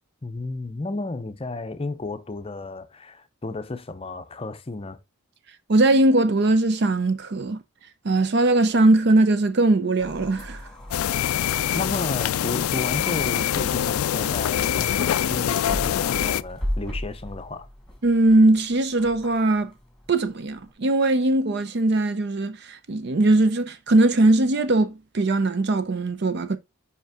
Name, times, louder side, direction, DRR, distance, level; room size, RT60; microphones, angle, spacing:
voice 1, 0.2-5.0 11.7-17.7, left 2 dB, 25° left, 0.6 m, -33 dB
voice 2, 5.7-7.6 8.0-10.6 18.0-19.7 20.1-26.6, right 2 dB, 50° right, 0.5 m, -20 dB
sound 1, 10.0-20.7, equal, 5° left, 1.5 m, -37 dB
sound 2, 10.9-16.4, left 10 dB, 80° left, 0.3 m, -24 dB
5.3 x 5.0 x 3.5 m
head